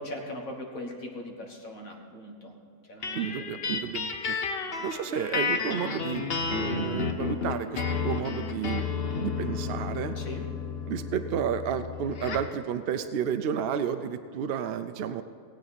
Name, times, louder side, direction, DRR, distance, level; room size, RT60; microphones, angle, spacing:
voice 1, 0.0-2.5 2.8-3.5 9.0-9.3 10.2-10.5, left 1 dB, 70° left, 2 dB, 1.9 m, -40 dB
sound 1, 3.0-12.6, left 5 dB, 50° left, 0.9 m, -32 dB
voice 2, 3.1-4.4 4.8-8.9 9.2-10.1 10.9-15.2, right 8 dB, 70° right, 9 dB, 0.6 m, -31 dB
18.5 x 8.4 x 4.2 m, 2.5 s
omnidirectional pair, 1.5 m